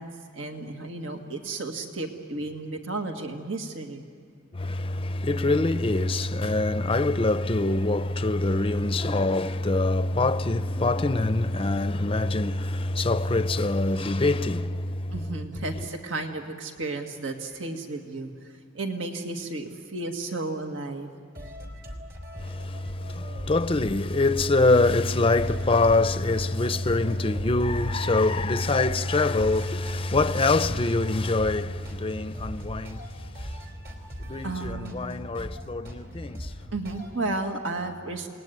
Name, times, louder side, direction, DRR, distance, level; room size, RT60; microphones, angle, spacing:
voice 1, 0.0-4.0 15.1-18.3 18.7-21.1 34.4-35.0 36.7-38.3, right 2 dB, 75° right, 1.9 m, -33 dB
voice 2, 4.5-15.2 22.4-33.1 33.4-33.5 34.2-36.5, left 2 dB, 30° left, 0.6 m, -24 dB
sound 1, 21.3-37.1, equal, 55° right, 3.7 m, -40 dB
28.0 x 20.0 x 9.3 m
head